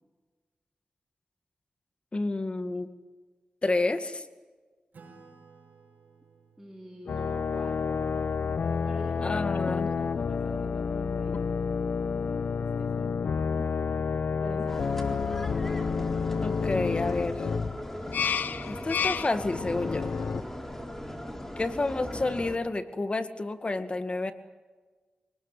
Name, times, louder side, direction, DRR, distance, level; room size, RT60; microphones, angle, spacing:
voice 1, 2.1-2.9 3.6-4.2 9.2-9.9 16.4-17.4 18.7-20.1 21.6-24.3, left 2 dB, 40° left, 9 dB, 2.1 m, -29 dB
Acoustic guitar / Strum, 4.9-9.9, right 4 dB, 80° right, 5.5 m, -58 dB
voice 2, 6.6-9.4 9.7-11.5 12.0-13.3 13.6-13.7 14.4-15.8 20.7-21.0, right 1 dB, 10° right, 0 dB, 4.2 m, -46 dB
sound 1, 7.1-20.4, left 5 dB, 85° left, 0.9 m, -30 dB
sound 2, 14.7-22.6, left 1 dB, 10° left, 4.0 m, -38 dB
25.0 x 19.5 x 9.2 m, 1.4 s
wide cardioid pair, 70°, 3 cm